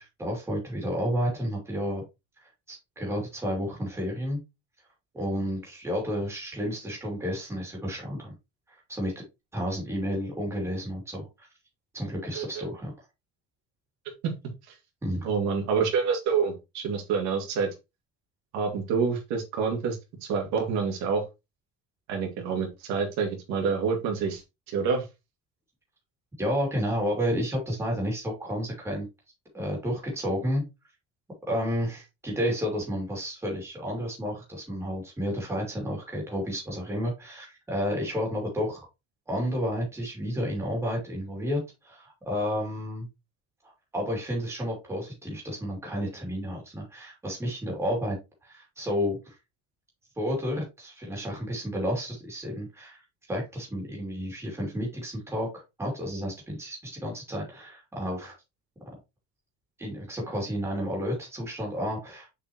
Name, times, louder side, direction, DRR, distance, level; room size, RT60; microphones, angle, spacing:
voice 1, 0.0-2.0 2.7-4.4 5.1-8.3 8.9-9.1 9.5-11.5 11.9-12.9 15.0-15.3 26.4-29.1 29.5-30.6 31.5-38.9 39.3-43.1 43.9-48.2 48.4-49.3 50.2-53.0 53.3-55.5 55.8-58.3 59.8-62.3, equal, 10° right, -1 dB, 2.7 m, -31 dB
voice 2, 12.3-12.7 14.2-14.3 14.6-14.8 15.2-17.7 18.5-21.2 22.1-25.1, right 5 dB, 70° right, 2 dB, 2.3 m, -27 dB
6.8 x 5.1 x 3.0 m, 0.24 s
cardioid pair, 180°, 29 cm